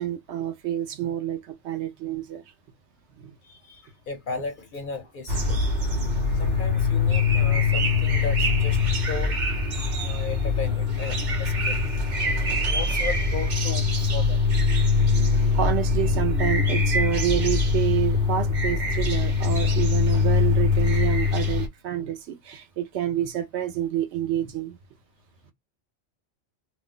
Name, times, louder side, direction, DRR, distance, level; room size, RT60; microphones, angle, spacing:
voice 1, 0.0-2.4 3.2-3.3 5.5-5.6 9.7-9.8 11.7-11.9 14.9-24.8, right 11 dB, 70° right, 0.9 m, -28 dB
voice 2, 3.4-5.6 6.4-9.4 10.0-11.9 12.7-14.4, left 4 dB, 55° left, 0.6 m, -36 dB
sound 1, 5.3-21.7, left 4 dB, 45° right, 0.9 m, -23 dB
2.6 x 2.1 x 3.6 m
omnidirectional pair, 1.2 m